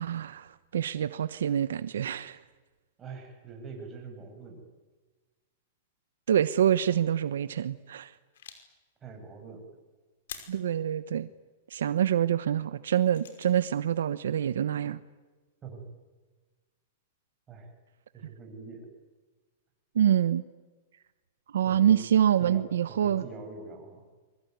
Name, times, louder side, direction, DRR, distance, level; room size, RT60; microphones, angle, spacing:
voice 1, 0.0-2.4 6.3-8.1 10.5-11.3 11.7-15.0 19.9-20.4 21.5-23.2, right 10 dB, 90° right, 14 dB, 1.1 m, -26 dB
voice 2, 3.0-4.6 9.0-9.6 15.6-15.8 17.5-17.7 18.1-18.9 21.6-21.9 22.4-22.6 22.9-24.0, right 4 dB, 20° right, 2 dB, 7.9 m, -44 dB
sound 1, 8.1-8.7 10.3-10.8 13.1-13.6, left 8 dB, 80° left, 5.5 m, -45 dB
25.0 x 24.5 x 9.5 m, 1.3 s
supercardioid pair, 155°, 0 cm